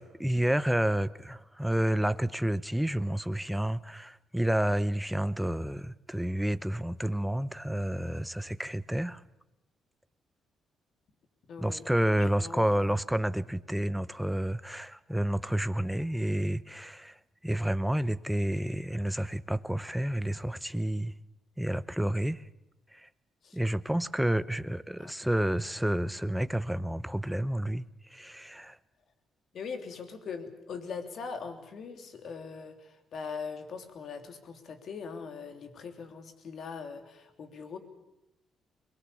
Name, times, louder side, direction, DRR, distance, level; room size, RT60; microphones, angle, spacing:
voice 1, 0.0-9.2 11.6-17.2 17.4-21.1 21.6-22.4 22.9-23.1 23.5-27.8 28.1-28.8, right 1 dB, 5° right, 0.8 m, -30 dB
voice 2, 11.5-11.8 12.1-12.9 23.4-23.6 25.0-25.1 29.5-37.8, left 5 dB, 60° left, 3.2 m, -41 dB
22.5 x 21.0 x 8.5 m
cardioid pair, 90°, 0 cm